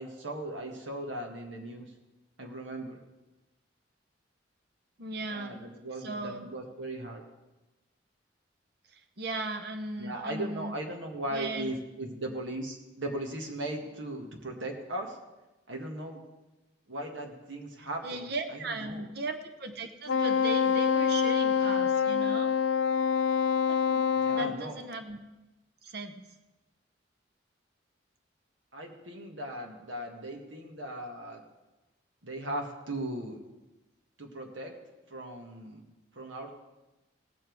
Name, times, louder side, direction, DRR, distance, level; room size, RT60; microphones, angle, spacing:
voice 1, 0.0-1.9 2.4-3.0 5.3-7.2 10.0-15.2 15.7-16.2 16.9-19.0 24.2-24.8 28.7-31.4 32.2-33.4 34.2-34.8 35.1-35.9 36.2-36.5, right 1 dB, 85° right, 2 dB, 1.8 m, -38 dB
voice 2, 5.0-5.6 6.0-6.5 8.9-10.7 11.3-11.7 17.8-22.5 23.7-25.2 25.8-26.2, right 2 dB, 60° right, 7 dB, 1.0 m, -37 dB
Wind instrument woodwind instrument, 20.1-24.6, left 6 dB, 80° left, 0.4 m, -26 dB
18.0 x 7.2 x 4.7 m, 1.1 s
head